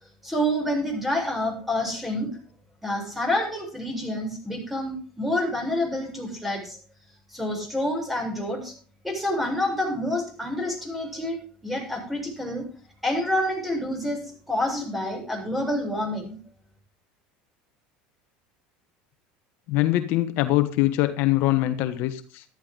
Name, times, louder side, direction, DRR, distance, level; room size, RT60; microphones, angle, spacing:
voice 1, 0.2-2.3 2.8-6.8 7.3-8.7 9.0-11.4 11.6-12.6 13.0-16.4, left 1 dB, 5° right, 2 dB, 7.4 m, -28 dB
voice 2, 19.7-22.4, left 16 dB, 65° left, 10 dB, 1.1 m, -23 dB
14.0 x 13.0 x 3.8 m, 0.39 s
supercardioid pair, 95°, 4 cm